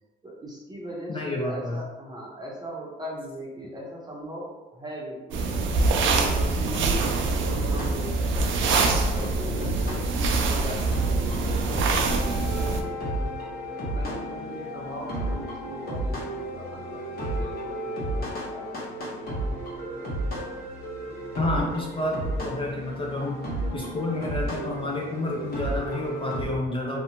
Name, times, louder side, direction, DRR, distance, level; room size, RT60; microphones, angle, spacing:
voice 1, 0.2-13.2 13.8-18.7, right 1 dB, 20° right, -3 dB, 0.8 m, -39 dB
voice 2, 1.1-1.8 21.4-23.4 23.7-27.0, left 2 dB, 25° left, -2 dB, 0.4 m, -29 dB
sound 1, 5.3-12.8, right 3 dB, 75° right, 0.4 m, -25 dB
sound 2, 6.7-26.4, right 1 dB, 55° left, 1.1 m, -33 dB
Wind instrument woodwind instrument, 12.0-19.0, left 10 dB, 85° left, 0.5 m, -41 dB
2.7 x 2.2 x 2.8 m, 1.1 s
cardioid pair, 90°, 20 cm